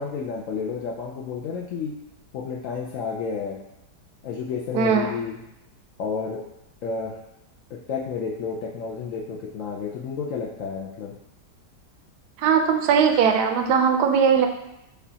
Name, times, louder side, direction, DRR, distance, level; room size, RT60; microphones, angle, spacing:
voice 1, 0.0-1.9 2.3-3.6 4.2-5.4 6.0-6.4 6.8-7.1 7.7-11.1, left 5 dB, 70° left, -4 dB, 0.8 m, -31 dB
voice 2, 4.7-5.1 12.4-14.5, right 6 dB, 75° right, 5 dB, 1.1 m, -19 dB
6.7 x 2.3 x 2.7 m, 0.84 s
omnidirectional pair, 1.8 m